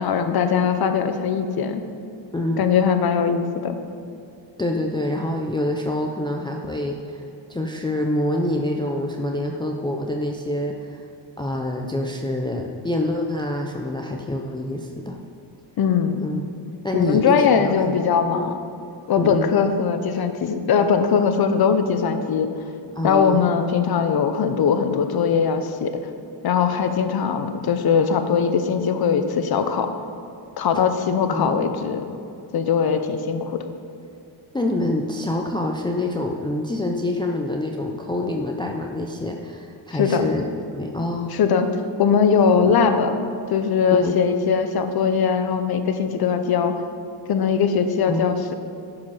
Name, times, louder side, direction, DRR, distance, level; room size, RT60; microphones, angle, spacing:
voice 1, 0.0-1.8 2.6-3.8 15.8-16.2 16.9-18.6 19.1-22.5 23.0-26.0 26.4-29.9 30.6-32.0 32.5-33.7 39.9-40.3 41.3-41.7 42.0-43.2 43.5-46.7 47.3-48.5, left 6 dB, 55° left, 8 dB, 0.8 m, -20 dB
voice 2, 2.3-2.7 4.6-7.2 7.5-11.0 11.4-15.2 16.2-16.4 16.8-17.8 18.3-18.5 19.2-19.5 23.0-23.5 31.3-31.8 34.5-40.4 40.7-41.4 42.5-42.7 43.9-44.2 48.1-48.4, left 1 dB, 10° left, 1 dB, 0.4 m, -26 dB
10.5 x 4.9 x 5.5 m, 2.5 s
cardioid pair, 120°, 46 cm